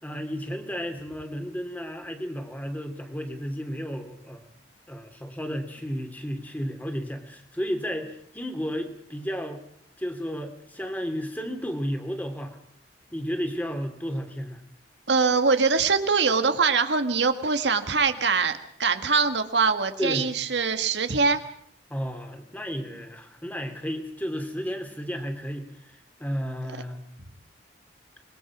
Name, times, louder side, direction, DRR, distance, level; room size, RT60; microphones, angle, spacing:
voice 1, 0.0-4.4 4.9-9.6 10.0-12.6 13.1-14.6 20.0-20.3 21.9-27.0, equal, 10° left, 5 dB, 2.9 m, -33 dB
voice 2, 15.1-21.4, right 4 dB, 80° right, 8 dB, 1.8 m, -23 dB
25.5 x 22.0 x 6.1 m, 0.68 s
head